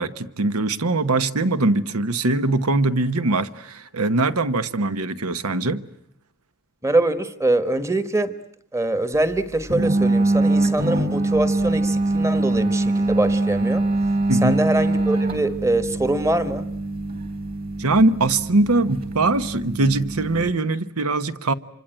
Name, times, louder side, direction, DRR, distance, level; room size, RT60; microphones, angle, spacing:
voice 1, 0.0-5.9 14.3-14.6 17.8-21.5, right 2 dB, 85° right, 1.2 m, -22 dB
voice 2, 6.8-8.3 8.7-13.8 14.4-16.7, right 2 dB, 15° right, 1.2 m, -23 dB
sound 1, 9.7-20.5, right 2 dB, 40° right, 3.6 m, -23 dB
26.5 x 25.0 x 9.0 m
head